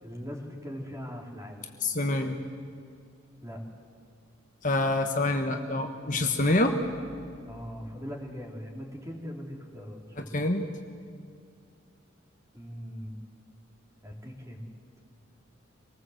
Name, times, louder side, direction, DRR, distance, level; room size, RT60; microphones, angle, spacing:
voice 1, 0.0-1.6 3.4-3.6 7.5-10.3 12.5-13.2 14.0-14.6, equal, 15° right, 1 dB, 3.1 m, -40 dB
voice 2, 1.8-2.4 4.6-6.8 10.2-10.6, left 2 dB, 40° left, 4 dB, 1.3 m, -26 dB
25.0 x 19.5 x 7.9 m, 2.2 s
head